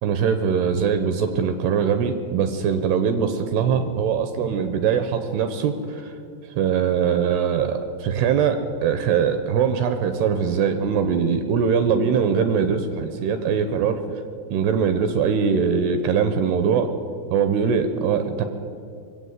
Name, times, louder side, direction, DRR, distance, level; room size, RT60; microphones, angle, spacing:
voice 1, 0.0-6.1 6.6-14.2 14.5-16.9 17.3-18.5, right 7 dB, 80° right, 8 dB, 2.5 m, -22 dB
22.0 x 8.1 x 8.0 m, 2.5 s
omnidirectional pair, 5.2 m